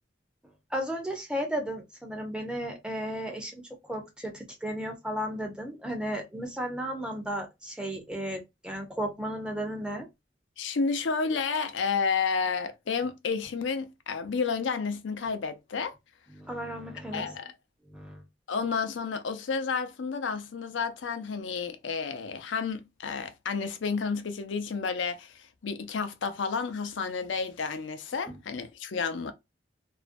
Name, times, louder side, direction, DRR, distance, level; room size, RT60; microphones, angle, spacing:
voice 1, 0.7-10.1 16.3-17.4 17.9-18.2 28.3-28.4, equal, 5° right, 0.5 m, -34 dB
voice 2, 10.6-15.9 17.1-17.5 18.5-29.3, left 5 dB, 85° left, 0.5 m, -31 dB
2.5 x 2.1 x 2.4 m
head